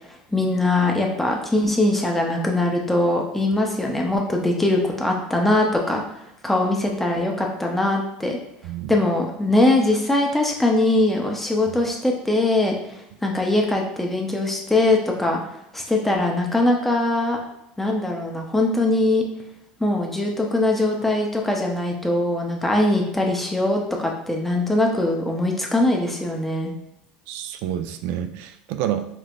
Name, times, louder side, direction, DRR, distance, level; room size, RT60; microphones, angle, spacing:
voice 1, 0.1-6.0 6.4-8.4 8.9-15.4 15.7-17.4 17.8-19.2 19.8-26.7, left 2 dB, 5° left, 0 dB, 0.7 m, -21 dB
voice 2, 8.6-9.0 27.3-29.1, right 10 dB, 65° right, 9 dB, 0.4 m, -28 dB
5.2 x 2.1 x 2.5 m, 0.86 s
supercardioid pair, 105°, 4 cm